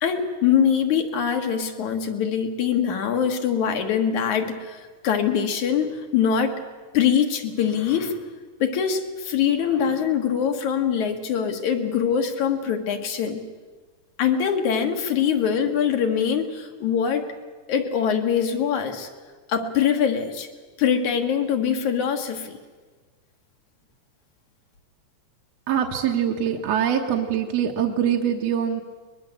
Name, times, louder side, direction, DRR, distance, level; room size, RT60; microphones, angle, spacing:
voice 1, 0.0-6.5 6.9-8.2 8.6-13.4 14.2-17.2 17.7-19.1 19.5-20.5 20.8-22.6, left 8 dB, 70° left, 4 dB, 3.1 m, -23 dB
voice 2, 25.7-28.8, right 9 dB, 60° right, 1 dB, 2.1 m, -23 dB
23.0 x 21.0 x 7.9 m, 1.4 s
omnidirectional pair, 3.6 m